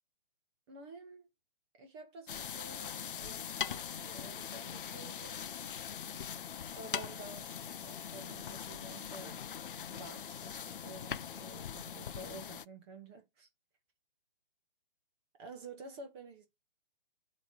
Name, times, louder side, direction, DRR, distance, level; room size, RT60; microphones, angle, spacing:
voice 1, 0.7-1.3 1.8-5.6 6.7-9.4 9.7-13.5 15.4-16.5, right 3 dB, 25° right, 1.3 m, -51 dB
sound 1, 2.3-12.6, left 8 dB, 60° left, 0.6 m, -42 dB
7.6 x 3.1 x 6.3 m
figure-of-eight pair, 135°, 29 cm